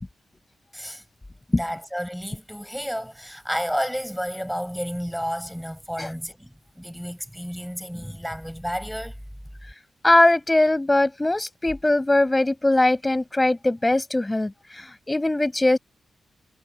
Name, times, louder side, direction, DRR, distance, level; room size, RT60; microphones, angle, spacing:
voice 1, 0.7-1.0 1.5-9.1, equal, ahead, 7.1 m, -31 dB
voice 2, 10.0-15.8, left 2 dB, 15° left, 7.0 m, -21 dB
cardioid pair, 90°, 0 cm